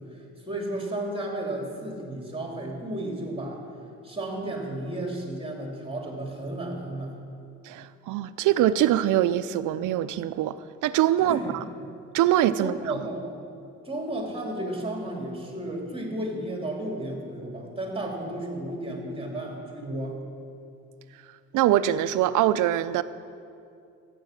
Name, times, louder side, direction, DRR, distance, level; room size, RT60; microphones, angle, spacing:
voice 1, 0.0-3.7 4.0-7.2 11.2-11.5 12.6-13.5 13.8-20.2, right 1 dB, 20° right, 2.8 m, -33 dB
voice 2, 7.6-11.6 12.1-12.9 21.5-23.0, right 12 dB, 85° right, 0.5 m, -23 dB
14.5 x 8.6 x 6.5 m
cardioid pair, 90°, 30 cm